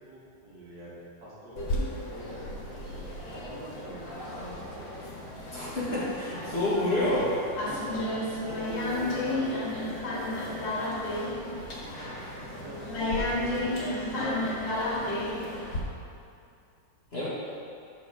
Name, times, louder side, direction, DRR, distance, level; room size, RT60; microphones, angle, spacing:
voice 1, 0.0-4.8 7.8-10.6 11.0-11.5 11.8-14.3 14.9-15.6, right 1 dB, 55° right, -7 dB, 1.9 m, -45 dB
sound 1, 1.6-15.8, left 1 dB, 75° left, 2.1 m, -33 dB
voice 2, 5.5-7.3 17.1-17.3, left 1 dB, 35° left, -9 dB, 1.9 m, -28 dB
7.8 x 4.6 x 6.2 m, 2.5 s
omnidirectional pair, 2.1 m